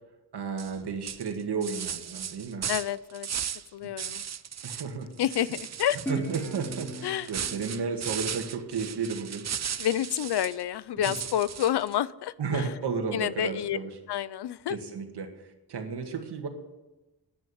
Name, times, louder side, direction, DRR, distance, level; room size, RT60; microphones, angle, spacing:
voice 1, 0.3-2.7 4.6-5.1 6.1-9.4 11.0-11.1 12.4-14.0 14.7-15.3 15.7-16.5, right 5 dB, 80° right, 5 dB, 2.0 m, -33 dB
sound 1, 0.6-0.8 1.1-3.7 4.0-4.9 5.2-10.6 11.0-11.9, right 8 dB, 45° right, 0.5 m, -36 dB
voice 2, 2.7-3.3 3.7-4.2 5.2-6.0 7.0-7.3 9.8-12.7 13.1-13.8 14.1-14.8, left 11 dB, 80° left, 19 dB, 0.6 m, -29 dB
Guitar, 6.1-9.3, right 1 dB, 5° left, 2.6 m, -39 dB
10.5 x 9.8 x 7.1 m, 1.0 s
wide cardioid pair, 110°, 40 cm